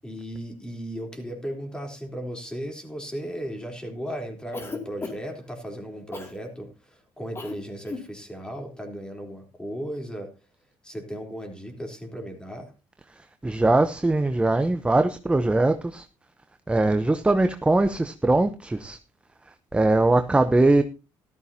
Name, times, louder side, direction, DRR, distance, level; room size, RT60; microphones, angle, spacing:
voice 1, 0.0-10.3 10.8-12.7, equal, 10° left, 3.6 m, -36 dB
Cough, 4.5-5.4 6.1-6.4 7.3-7.6 7.8-8.1, left 3 dB, 25° left, 2.5 m, -35 dB
voice 2, 13.4-16.0 16.7-19.0 19.7-20.8, right 2 dB, 10° right, 0.8 m, -21 dB
13.5 x 13.0 x 2.8 m
cardioid pair, 85°, 10 cm